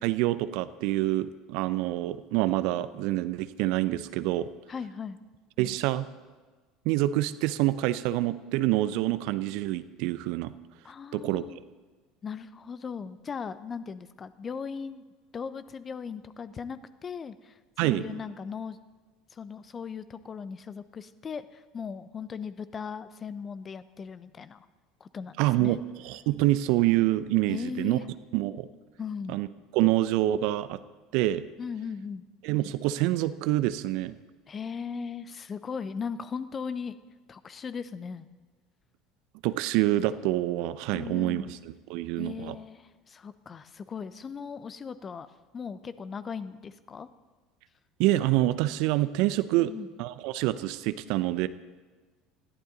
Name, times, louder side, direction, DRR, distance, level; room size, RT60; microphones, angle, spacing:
voice 1, 0.0-4.5 5.6-6.1 6.8-10.5 11.1-11.5 17.8-18.0 25.4-25.8 26.0-28.0 28.3-28.7 29.3-29.5 29.7-30.8 31.1-31.4 32.4-34.2 39.4-41.6 41.9-42.6 48.0-49.7 50.0-51.5, right 16 dB, 60° right, 14 dB, 0.6 m, -26 dB
voice 2, 4.7-5.2 10.8-11.6 12.2-15.0 15.3-17.6 17.8-18.8 19.3-24.7 25.0-25.8 27.5-28.0 29.0-29.4 31.6-32.2 34.5-37.0 37.3-38.3 40.9-41.5 42.2-45.3 45.5-47.1 49.5-49.9, left 6 dB, 30° left, 14 dB, 0.8 m, -38 dB
21.0 x 14.5 x 4.0 m, 1.3 s
figure-of-eight pair, 70°, 0 cm